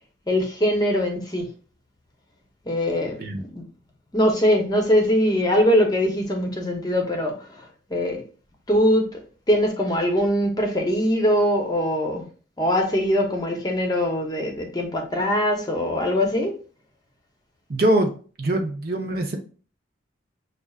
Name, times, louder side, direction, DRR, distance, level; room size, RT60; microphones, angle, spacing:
voice 1, 0.3-1.4 2.7-3.2 3.5-3.6 4.1-7.3 7.9-8.2 8.7-9.0 9.5-12.2 12.6-16.5, equal, 20° left, 2 dB, 0.8 m, -22 dB
voice 2, 3.1-3.4 17.7-18.1 18.4-19.4, right 1 dB, 50° right, 2 dB, 0.7 m, -23 dB
6.7 x 2.5 x 2.3 m, 0.39 s
head